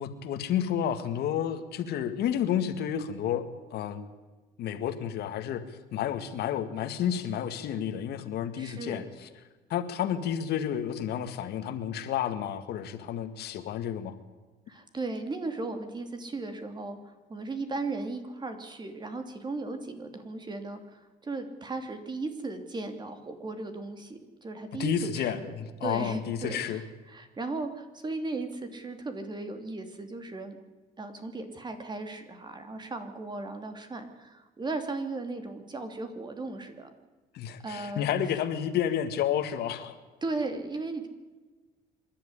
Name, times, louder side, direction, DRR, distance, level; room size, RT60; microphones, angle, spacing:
voice 1, 0.0-3.4 3.7-4.0 4.6-5.6 5.9-9.3 9.7-14.2 24.8-26.8 37.3-40.0, left 9 dB, 70° left, 9 dB, 2.0 m, -31 dB
voice 2, 8.6-9.0 14.7-25.5 25.8-30.6 31.0-36.9 37.6-38.1 40.2-41.1, right 3 dB, 25° right, 7 dB, 3.0 m, -36 dB
26.0 x 11.5 x 10.0 m, 1.2 s
cardioid pair, 110°, 17 cm